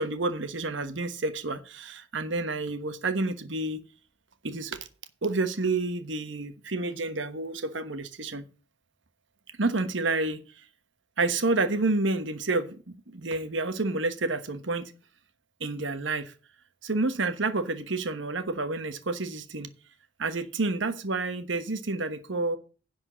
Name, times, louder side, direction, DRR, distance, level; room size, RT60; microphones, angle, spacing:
voice 1, 0.0-3.8 4.4-4.9 5.2-8.5 9.6-10.6 11.2-14.9 15.6-16.3 16.8-19.7 20.2-22.6, right 3 dB, 70° right, 9 dB, 1.2 m, -29 dB
10.5 x 4.5 x 7.5 m, 0.36 s
head